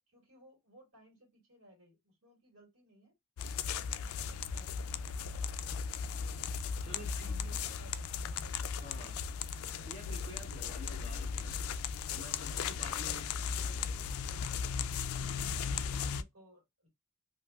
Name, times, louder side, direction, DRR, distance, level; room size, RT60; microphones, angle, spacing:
voice 1, 0.1-3.1 3.6-5.6 6.9-8.6 8.9-9.0 13.1-13.5 15.2-16.9, right 1 dB, 65° right, 1.7 m, -60 dB
sound 1, 3.4-16.2, left 6 dB, 80° left, 0.3 m, -37 dB
voice 2, 6.8-7.3 8.8-9.2 9.8-11.6 12.1-14.1, equal, 25° left, 1.5 m, -50 dB
3.1 x 2.7 x 2.2 m
head